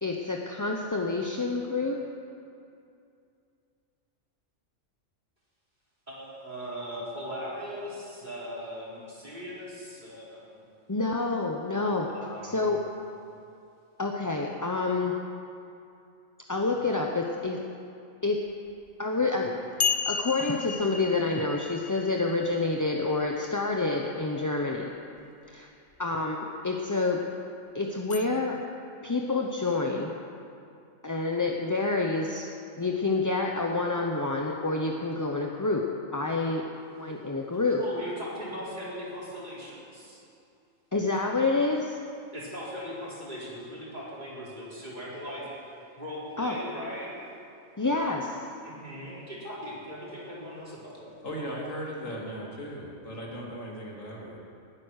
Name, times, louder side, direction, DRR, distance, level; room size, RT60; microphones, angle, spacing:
voice 1, 0.0-2.0 10.9-12.1 12.4-12.8 14.0-15.2 16.5-17.6 18.2-18.4 19.0-19.5 20.1-24.9 25.5-25.7 26.0-27.2 27.7-28.6 29.0-30.1 31.0-32.5 32.8-36.6 37.0-37.8 40.9-42.0 46.4-46.6 47.8-48.4, left 3 dB, 20° left, 0 dB, 0.6 m, -28 dB
voice 2, 6.1-10.6 12.1-12.8 37.6-40.2 42.3-45.5 46.0-47.2 48.6-51.1, equal, 35° right, -7 dB, 4.5 m, -39 dB
sound 1, 18.9-19.0 19.8-23.4 28.1-28.3, left 5 dB, 60° left, 0.3 m, -33 dB
voice 3, 51.2-54.4, equal, 85° left, -2 dB, 2.8 m, -37 dB
19.5 x 9.5 x 6.5 m, 2.5 s
omnidirectional pair, 1.3 m